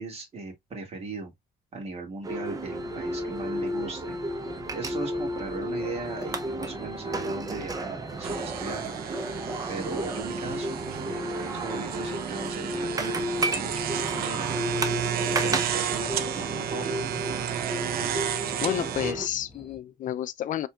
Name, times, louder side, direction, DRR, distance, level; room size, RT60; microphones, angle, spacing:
voice 1, 0.0-1.3 1.7-4.2 4.7-8.9 9.7-14.6 15.4-17.1, right 3 dB, 40° right, 2.2 m, -38 dB
sound 1, 2.2-19.3, right 1 dB, 20° right, 0.6 m, -32 dB
sound 2, 2.7-19.8, left 1 dB, 5° left, 1.2 m, -50 dB
sound 3, 8.2-19.1, right 10 dB, 65° right, 0.6 m, -32 dB
voice 2, 18.6-20.7, left 11 dB, 50° left, 0.5 m, -30 dB
4.3 x 3.4 x 2.3 m
cardioid pair, 110°, 17 cm